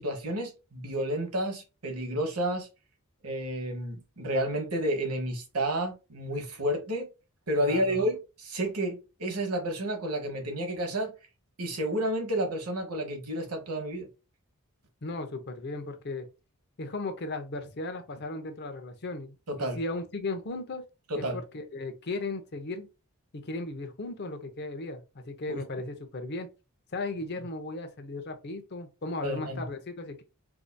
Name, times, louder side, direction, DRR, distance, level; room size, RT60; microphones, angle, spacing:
voice 1, 0.0-2.7 3.2-7.1 7.5-11.1 11.6-14.1 19.5-19.8 21.1-21.4 25.5-25.6 29.2-29.6, right 1 dB, 85° right, 1.2 m, -31 dB
voice 2, 7.6-8.1 15.0-16.3 16.8-20.8 21.2-22.9 23.3-26.5 26.9-30.2, left 2 dB, 50° left, 0.7 m, -36 dB
4.7 x 2.7 x 2.2 m
head